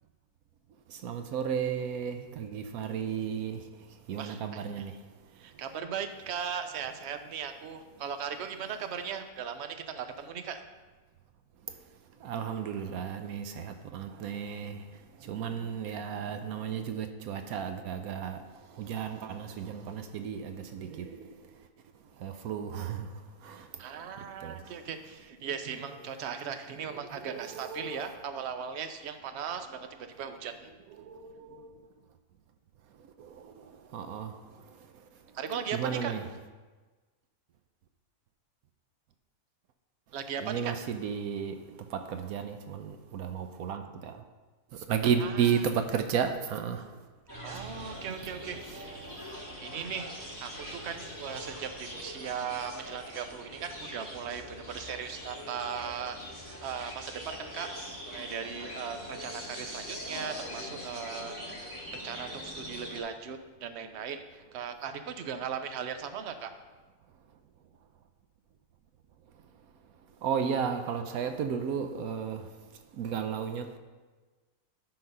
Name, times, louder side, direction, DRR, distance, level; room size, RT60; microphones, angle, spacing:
voice 1, 0.9-3.6 4.1-5.0 12.2-14.8 15.2-18.5 18.8-21.3 22.2-23.1 23.4-23.7 24.4-24.6 26.9-28.3 30.9-31.6 33.2-33.5 33.9-34.4 35.7-36.3 40.4-41.6 41.9-44.1 44.9-46.8 48.7-48.8 70.2-72.5 73.0-73.8, right 7 dB, 75° right, 1.0 m, -33 dB
voice 2, 5.4-10.6 23.8-29.9 30.2-30.7 35.3-36.1 40.1-40.7 45.2-45.4 47.4-48.9 49.6-57.7 58.1-66.5, right 7 dB, 60° right, 0.8 m, -38 dB
sound 1, 47.3-63.0, equal, 10° right, 2.0 m, -42 dB
12.0 x 4.0 x 5.4 m
omnidirectional pair, 1.6 m